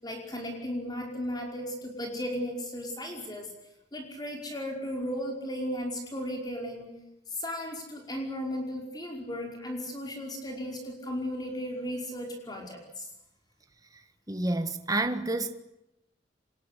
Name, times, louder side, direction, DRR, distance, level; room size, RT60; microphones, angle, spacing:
voice 1, 0.0-3.5 3.9-6.9 7.3-13.1, equal, 20° left, 5.2 m, -35 dB
voice 2, 14.3-15.5, right 2 dB, 20° right, 1.6 m, -29 dB
26.0 x 21.0 x 8.5 m
head